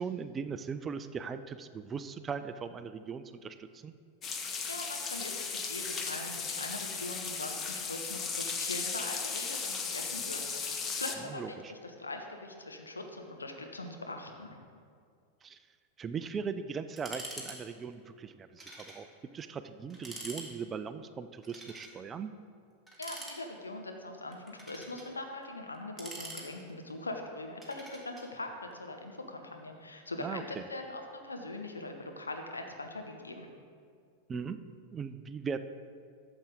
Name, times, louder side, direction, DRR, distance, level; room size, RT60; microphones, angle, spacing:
voice 1, 0.0-3.9 11.3-11.7 15.4-15.6 16.0-19.1 19.3-22.3 30.2-30.6 34.3-34.6 34.9-35.6, right 6 dB, 20° right, 11 dB, 0.4 m, -39 dB
sound 1, 4.2-11.2, left 5 dB, 25° left, 0.9 m, -36 dB
voice 2, 4.7-14.5 23.0-33.5, left 2 dB, 80° left, 4 dB, 1.0 m, -42 dB
sound 2, 17.0-17.6 17.8-17.9 18.6-19.0 19.4-19.5 19.9-20.5 21.4-22.0 22.9-23.7 24.3-25.1 25.7-26.9 27.6-28.3, right 1 dB, ahead, 1.9 m, -45 dB
13.0 x 7.1 x 3.8 m, 2.2 s
figure-of-eight pair, 90°, 0 cm